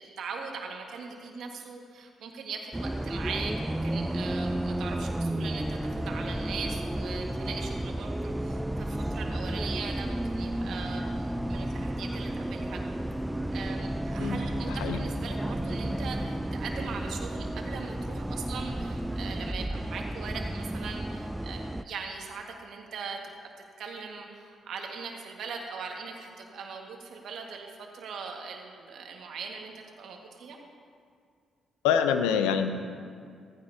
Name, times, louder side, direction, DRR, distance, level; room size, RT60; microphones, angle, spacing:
voice 1, 0.0-11.1 11.5-12.8 13.5-23.5 23.8-30.6, right 5 dB, 70° right, 1 dB, 1.7 m, -40 dB
Bus, 2.7-21.8, right 1 dB, 10° right, 0.4 m, -32 dB
voice 2, 14.7-15.0 31.8-32.7, left 8 dB, 85° left, 8 dB, 0.6 m, -25 dB
15.0 x 14.5 x 2.8 m, 2.2 s
hypercardioid pair, 50°, 0 cm